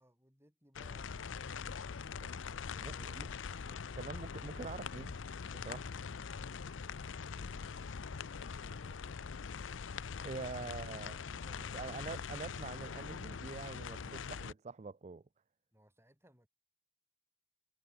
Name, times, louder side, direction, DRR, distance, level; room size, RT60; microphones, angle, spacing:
voice 1, 0.0-4.4 10.1-10.5 11.1-12.3 15.7-16.5, equal, 15° right, 7.2 m, -68 dB
sound 1, 0.7-14.5, left 6 dB, 90° left, 0.6 m, -43 dB
voice 2, 2.8-3.3 4.0-5.2 5.5-5.9 10.2-11.2 11.7-15.2, right 4 dB, 35° right, 0.4 m, -45 dB
Motorcycle, 4.2-10.6, left 2 dB, 60° left, 1.3 m, -64 dB
head